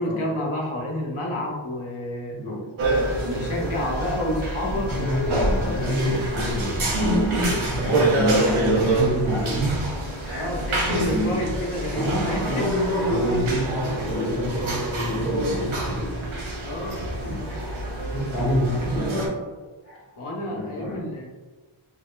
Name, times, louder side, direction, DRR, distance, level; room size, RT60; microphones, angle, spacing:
voice 1, 0.0-2.4 3.2-6.2 10.3-12.7 16.6-17.0 20.2-21.3, left 1 dB, 80° left, -1 dB, 0.8 m, -29 dB
voice 2, 2.3-2.6 4.6-9.9 10.2-10.5 10.9-11.4 11.9-12.7 13.1-16.4 17.1-19.4 19.8-20.0 20.4-21.0, equal, 50° left, -5 dB, 1.0 m, -28 dB
sound 1, 2.8-19.3, right 1 dB, 70° right, 0.7 m, -26 dB
3.0 x 2.7 x 2.2 m, 1.3 s
wide cardioid pair, 70°, 50 cm